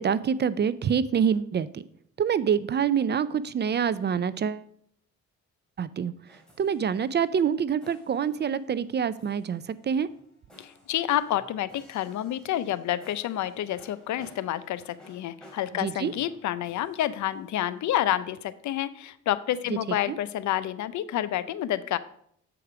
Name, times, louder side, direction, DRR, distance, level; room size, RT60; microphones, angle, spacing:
voice 1, 0.0-1.8 2.2-4.6 5.8-6.1 6.6-10.1 15.8-16.1 20.1-20.2, right 7 dB, 35° right, 17 dB, 0.4 m, -26 dB
sound 1, 6.2-18.1, equal, 5° left, 2.7 m, -57 dB
voice 2, 10.6-22.0, left 12 dB, 70° left, 15 dB, 0.6 m, -29 dB
7.8 x 4.9 x 5.9 m, 0.67 s
cardioid pair, 90°, 30 cm